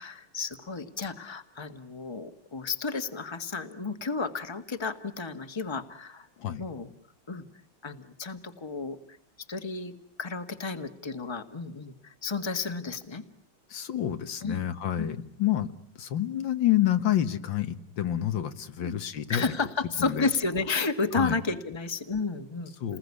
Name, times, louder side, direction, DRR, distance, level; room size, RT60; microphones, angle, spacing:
voice 1, 0.0-6.3 6.6-6.9 7.3-7.4 7.8-9.2 9.5-13.2 14.4-14.6 15.0-15.1 18.8-18.9 19.3-22.7, left 4 dB, 15° left, 8 dB, 1.5 m, -32 dB
voice 2, 13.7-15.7 16.0-19.5 20.1-20.3 21.2-21.3 22.8-23.0, left 12 dB, 80° left, 9 dB, 2.1 m, -28 dB
29.5 x 21.0 x 9.7 m, 0.66 s
omnidirectional pair, 2.0 m